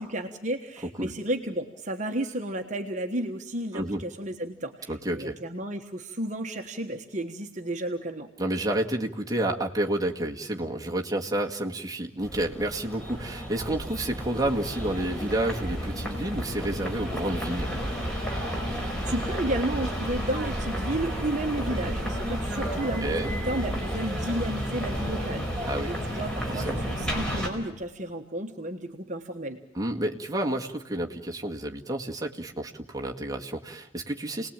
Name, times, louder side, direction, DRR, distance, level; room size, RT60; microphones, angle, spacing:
voice 1, 0.0-8.3 18.7-29.6, right 1 dB, 35° right, 4 dB, 1.4 m, -32 dB
voice 2, 4.9-5.4 8.4-17.7 22.6-22.7 23.0-23.3 25.6-25.9 26.5-26.8 29.8-34.5, right 1 dB, 15° right, 0 dB, 1.8 m, -30 dB
sound 1, 12.2-27.5, equal, 5° left, 4.6 m, -31 dB
29.5 x 19.5 x 8.9 m, 0.93 s
head